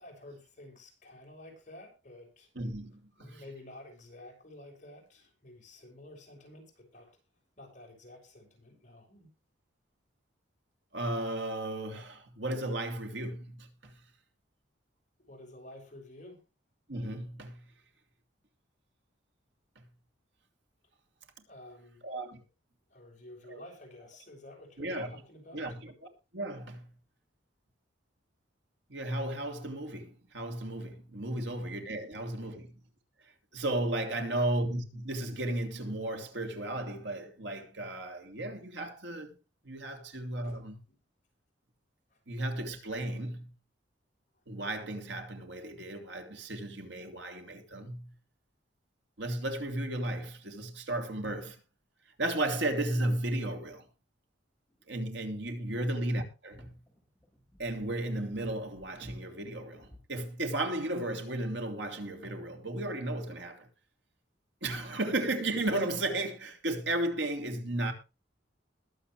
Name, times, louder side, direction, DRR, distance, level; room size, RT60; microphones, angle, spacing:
voice 1, 0.0-2.5 3.2-7.2 7.6-9.3 15.2-16.4 21.5-22.0 22.9-25.7 31.3-31.6 34.1-34.4 39.9-40.0 40.4-40.6 40.9-41.0 42.1-42.2 55.7-55.9, left 1 dB, 40° left, 6.3 m, -51 dB
voice 2, 2.5-3.4 10.9-14.0 16.9-17.7 19.8-19.9 22.0-22.4 23.5-23.6 24.8-25.2 25.5-25.9 26.3-26.9 28.9-32.8 33.2-39.4 39.6-40.8 42.3-43.5 44.5-48.1 49.2-51.6 52.2-53.9 54.9-56.8 57.6-63.7 64.6-67.9, right 1 dB, 75° right, 3.0 m, -34 dB
sound 1, 54.5-60.0, left 1 dB, 5° left, 4.9 m, -58 dB
21.0 x 8.0 x 3.2 m
head